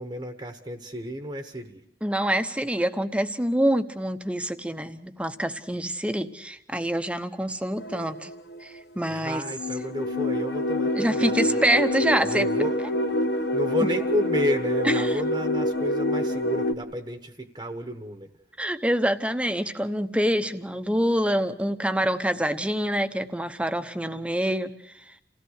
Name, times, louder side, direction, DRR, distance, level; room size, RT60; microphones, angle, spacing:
voice 1, 0.0-1.8 9.1-11.6 12.0-12.8 13.1-18.3, equal, 25° right, 6 dB, 1.2 m, -32 dB
voice 2, 2.0-8.3 8.6-9.4 10.9-12.5 18.6-24.7, equal, 5° right, 9 dB, 0.9 m, -26 dB
sound 1, 7.8-8.8 9.3-16.7, left 1 dB, 70° left, 1.0 m, -26 dB
28.5 x 17.0 x 6.5 m, 0.77 s
head